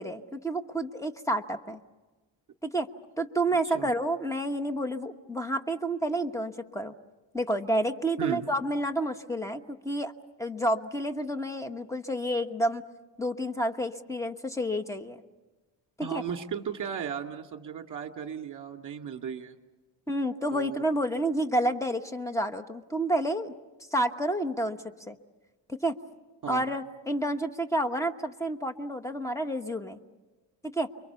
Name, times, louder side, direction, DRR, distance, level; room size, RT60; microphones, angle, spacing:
voice 1, 0.0-1.8 2.6-2.9 3.2-6.9 7.3-10.1 10.4-12.8 13.2-15.2 16.0-16.2 20.1-23.5 23.9-25.2 25.7-26.0 26.5-30.0 30.6-30.9, right 1 dB, 5° left, 7 dB, 1.1 m, -29 dB
voice 2, 16.0-19.6 20.5-20.8 26.4-26.6, right 7 dB, 40° right, 5 dB, 2.2 m, -35 dB
30.0 x 23.5 x 7.0 m, 1.2 s
cardioid pair, 120°, 47 cm